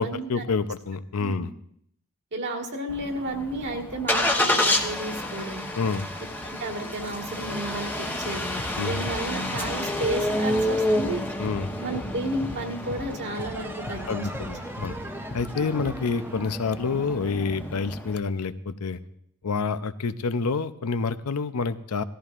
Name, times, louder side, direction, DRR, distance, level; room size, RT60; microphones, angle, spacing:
voice 1, 0.0-1.5 5.8-6.1 8.8-9.0 11.4-11.7 14.1-14.9 15.3-19.0 19.4-22.0, left 4 dB, 80° left, 12 dB, 0.6 m, -28 dB
voice 2, 2.3-5.6 6.6-11.2 11.8-14.5, right 1 dB, 55° right, 2 dB, 1.8 m, -32 dB
Engine starting, 2.9-18.2, left 1 dB, 10° left, 1.0 m, -30 dB
sound 1, 8.6-8.7 9.1-9.2 9.5-9.7 10.0-10.2 10.5-10.7 11.0-11.1 11.5-11.6 11.9-12.1 12.4-12.6 12.9-13.1 13.4-13.5 13.9-14.0 14.3-14.5 14.8-15.0 15.3-15.5 15.8-15.9, left 2 dB, 35° left, 0.9 m, -38 dB
sound 2, 13.2-18.5, right 1 dB, 10° right, 0.7 m, -41 dB
17.5 x 14.0 x 2.5 m, 0.69 s
head